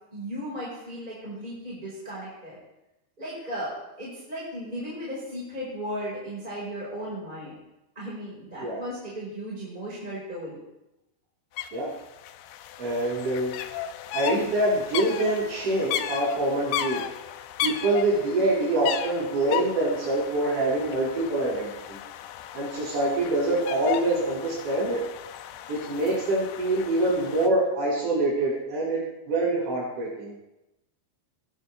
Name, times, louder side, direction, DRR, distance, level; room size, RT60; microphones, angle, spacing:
voice 1, 0.1-2.6 3.2-7.5 7.9-10.6 26.9-27.1, equal, 10° right, -7 dB, 4.4 m, -36 dB
sound 1, 11.6-11.7 11.9-27.5, left 11 dB, 80° left, 3.0 m, -35 dB
voice 2, 12.8-13.5 14.1-17.0 17.6-22.0 22.5-25.0 25.7-30.3, right 2 dB, 65° right, -10 dB, 9.0 m, -25 dB
21.0 x 11.5 x 3.4 m, 0.93 s
omnidirectional pair, 5.9 m